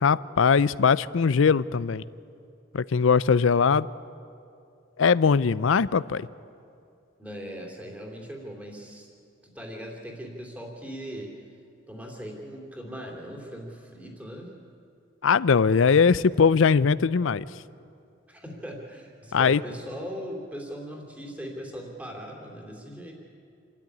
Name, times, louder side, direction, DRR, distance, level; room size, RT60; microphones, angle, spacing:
voice 1, 0.0-2.0 2.7-3.9 5.0-6.3 15.2-17.4 19.3-19.6, left 5 dB, 75° left, 18 dB, 0.5 m, -21 dB
voice 2, 7.2-9.1 9.4-11.3 11.9-14.5 18.3-23.1, equal, 5° right, 0 dB, 3.1 m, -39 dB
28.0 x 13.0 x 9.8 m, 2.5 s
head